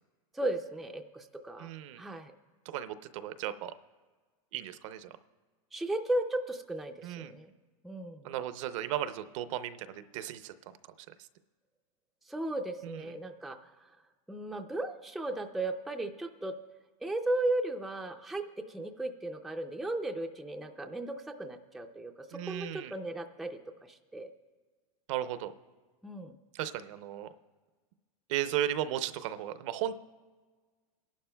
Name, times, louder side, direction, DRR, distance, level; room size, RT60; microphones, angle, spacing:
voice 1, 0.3-1.7 2.0-2.3 5.7-7.5 7.8-8.3 12.3-13.9 14.3-16.6 17.0-24.3 26.0-26.4, right 1 dB, ahead, 4 dB, 0.3 m, -36 dB
voice 2, 1.6-2.0 2.7-3.7 4.5-5.1 7.0-7.3 8.2-10.5 12.8-12.9 22.3-22.9 25.1-25.5 26.5-27.3 28.3-29.9, right 11 dB, 60° right, 12 dB, 0.6 m, -35 dB
23.5 x 11.5 x 2.2 m, 1.4 s
supercardioid pair, 145°, 18 cm